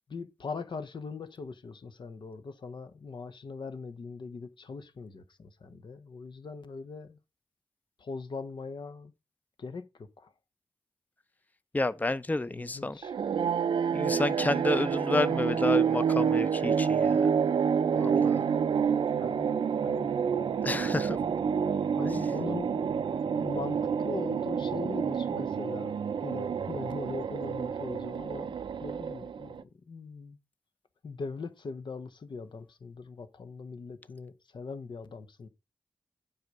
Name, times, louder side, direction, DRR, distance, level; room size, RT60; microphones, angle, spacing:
voice 1, 0.1-7.2 8.0-9.1 9.6-10.3 12.5-13.6 18.8-20.1 20.5-20.7 21.9-22.8 23.4-25.9 26.2-30.4 31.0-35.5, left 4 dB, 75° left, 1.0 m, -41 dB
voice 2, 11.7-13.0 13.9-17.3 17.9-18.4 20.6-21.2, left 2 dB, 20° left, 0.5 m, -30 dB
sound 1, 13.0-29.6, right 7 dB, 85° right, 0.5 m, -28 dB
7.9 x 5.0 x 5.3 m
cardioid pair, 45°, 8 cm